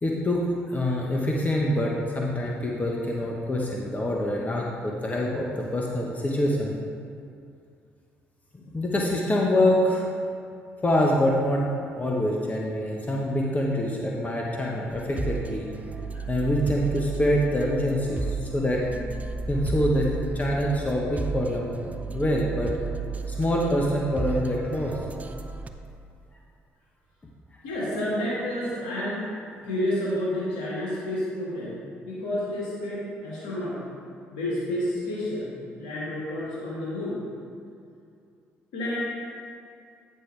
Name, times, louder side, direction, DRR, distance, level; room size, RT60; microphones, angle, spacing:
voice 1, 0.0-6.7 8.5-10.0 10.8-11.7 12.0-15.7 16.1-18.8 19.5-21.8 22.1-22.7 23.3-25.0 27.9-28.0 28.6-28.7, left 1 dB, 30° left, -2 dB, 1.0 m, -25 dB
sound 1, 14.9-25.7, right 4 dB, 25° right, 0.6 m, -33 dB
voice 2, 27.6-29.3 29.6-31.8 32.0-33.8 34.3-35.5 35.8-37.2 38.7-39.0, left 1 dB, 85° left, -8 dB, 1.8 m, -30 dB
9.6 x 6.5 x 3.3 m, 2.4 s
supercardioid pair, 60°, 5 cm